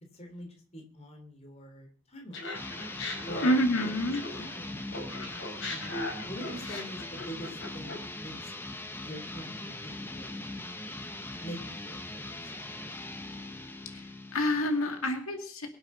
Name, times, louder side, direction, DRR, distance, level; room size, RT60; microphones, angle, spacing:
voice 1, 0.1-2.5 3.3-3.5 3.8-5.0 5.7-8.5 9.0-10.4 11.4-12.5, equal, 30° left, 3 dB, 3.2 m, -45 dB
Laughter, 2.3-4.6 4.9-8.1, left 2 dB, 55° left, 5.0 m, -38 dB
sound 1, 2.5-15.1, left 2 dB, 10° left, 0.8 m, -41 dB
voice 2, 3.4-4.2 13.9-15.7, equal, 85° left, 5 dB, 2.3 m, -28 dB
23.5 x 7.9 x 5.6 m, 0.43 s
head